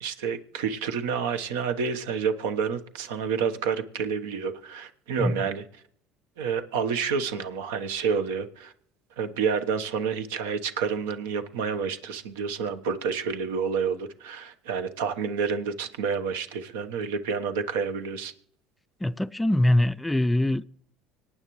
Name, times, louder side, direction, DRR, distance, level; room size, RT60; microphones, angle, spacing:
voice 1, 0.0-5.6 6.4-8.7 9.2-18.3, right 6 dB, 85° right, 1.1 m, -29 dB
voice 2, 19.0-20.6, left 1 dB, 10° left, 0.4 m, -23 dB
25.5 x 8.9 x 3.2 m
supercardioid pair, 85°, 0 cm